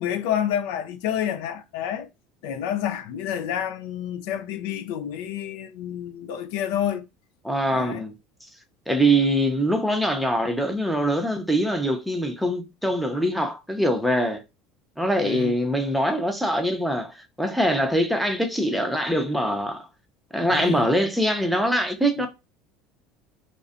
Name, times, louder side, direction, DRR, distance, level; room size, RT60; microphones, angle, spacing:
voice 1, 0.0-2.1 2.4-7.1 7.7-8.0 15.2-15.5 20.4-20.9 22.2-22.3, left 9 dB, 80° left, 0.4 m, -29 dB
voice 2, 7.4-8.1 8.9-14.4 15.0-19.9 20.3-22.3, right 1 dB, ahead, 0.6 m, -23 dB
2.4 x 2.1 x 2.4 m
supercardioid pair, 110°, 0 cm